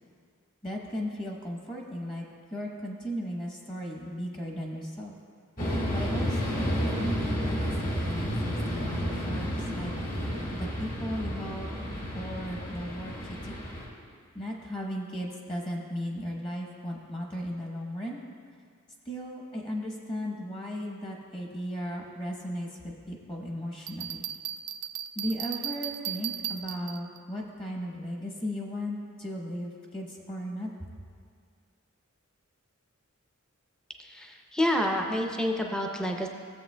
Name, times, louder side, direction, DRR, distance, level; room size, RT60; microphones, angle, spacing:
voice 1, 0.6-2.2 2.5-5.2 5.9-6.7 7.0-9.9 10.5-11.7 12.1-13.6 14.3-18.2 19.0-24.2 25.1-30.9, equal, 25° left, 0 dB, 1.0 m, -36 dB
sound 1, 5.6-13.9, equal, 40° left, 1.5 m, -31 dB
Bell, 23.9-27.2, right 11 dB, 70° right, 0.3 m, -36 dB
voice 2, 34.0-36.3, left 1 dB, 5° left, 2 dB, 0.5 m, -28 dB
15.5 x 7.4 x 2.2 m, 2.2 s
head